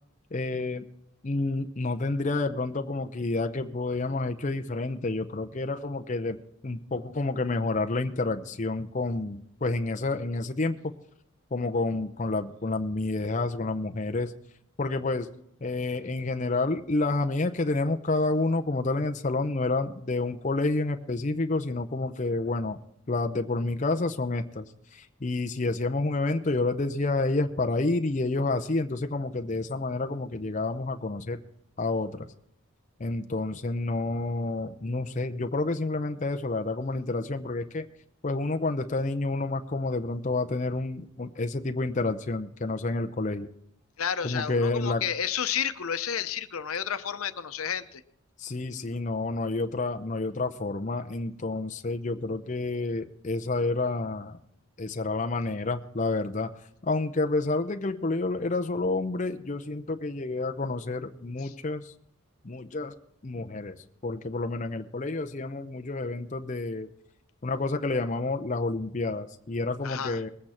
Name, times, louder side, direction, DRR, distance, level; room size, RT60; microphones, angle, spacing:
voice 1, 0.3-0.9 1.2-6.4 6.6-10.9 11.5-14.3 14.8-15.3 15.6-22.8 23.1-24.6 24.9-31.4 31.8-32.3 33.0-37.9 38.2-43.5 44.2-45.0 48.4-54.4 54.8-56.5 56.8-61.9 62.4-62.9 63.2-63.8 64.0-66.9 67.4-70.3, left 2 dB, 35° left, 7 dB, 0.6 m, -29 dB
voice 2, 44.0-48.0 61.4-61.5 63.4-63.5 69.8-70.2, left 8 dB, 90° left, 10 dB, 0.8 m, -31 dB
20.5 x 8.5 x 4.4 m, 0.73 s
head